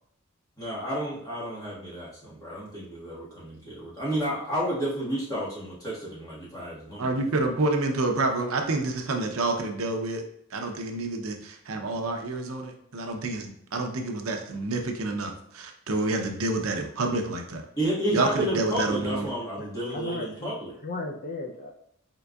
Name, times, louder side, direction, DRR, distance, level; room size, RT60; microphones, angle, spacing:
voice 1, 0.6-7.1 17.8-20.7, equal, 15° left, -7 dB, 1.5 m, -31 dB
voice 2, 7.0-10.2 10.5-17.6 18.1-19.3, right 2 dB, 80° right, 4 dB, 0.6 m, -28 dB
voice 3, 19.6-20.5 20.8-21.7, left 3 dB, 40° left, 1 dB, 0.4 m, -35 dB
4.4 x 3.8 x 2.3 m, 0.70 s
head